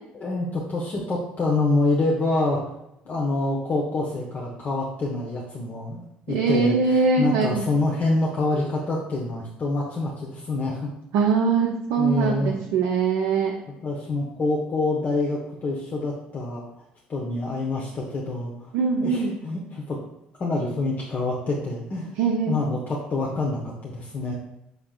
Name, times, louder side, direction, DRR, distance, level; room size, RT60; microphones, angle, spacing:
voice 1, 0.1-2.6 3.0-10.9 12.0-12.6 13.8-16.8 17.1-18.7 19.0-20.0 20.4-22.1 22.5-24.3, left 2 dB, 40° left, -3 dB, 0.8 m, -26 dB
voice 2, 6.3-7.6 11.1-13.6 18.7-19.3 22.2-22.5, right 5 dB, 65° right, -1 dB, 0.6 m, -22 dB
6.4 x 3.4 x 2.3 m, 0.84 s
hypercardioid pair, 60°, 5 cm